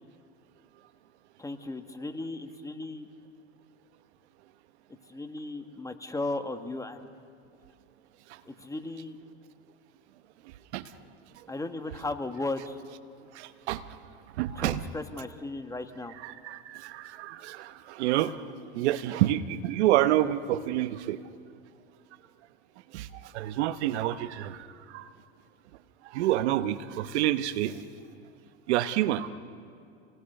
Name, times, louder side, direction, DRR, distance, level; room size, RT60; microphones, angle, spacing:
voice 1, 1.4-3.1 5.1-7.1 8.5-9.2 11.5-12.8 14.6-16.1, left 2 dB, 10° left, 7 dB, 1.4 m, -36 dB
voice 2, 13.3-13.8 14.4-14.8 16.2-21.2 22.9-25.1 26.0-27.8 28.7-29.3, right 13 dB, 75° right, 12 dB, 1.0 m, -28 dB
28.5 x 19.5 x 6.7 m, 2.4 s
supercardioid pair, 110°, 34 cm